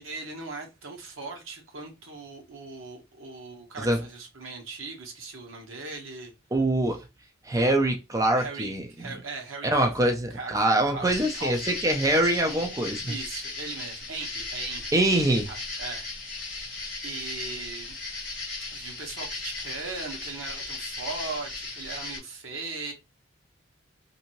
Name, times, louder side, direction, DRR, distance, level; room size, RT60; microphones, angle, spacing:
voice 1, 0.0-6.3 6.9-7.0 8.3-11.8 13.0-16.1 17.0-17.9 18.7-22.9, right 3 dB, 90° right, 1.0 m, -39 dB
voice 2, 6.5-7.0 7.5-8.8 9.7-13.1 14.9-15.4, right 1 dB, 15° right, 0.4 m, -24 dB
sound 1, 11.1-22.2, left 3 dB, 5° left, 1.3 m, -37 dB
2.7 x 2.7 x 2.9 m
head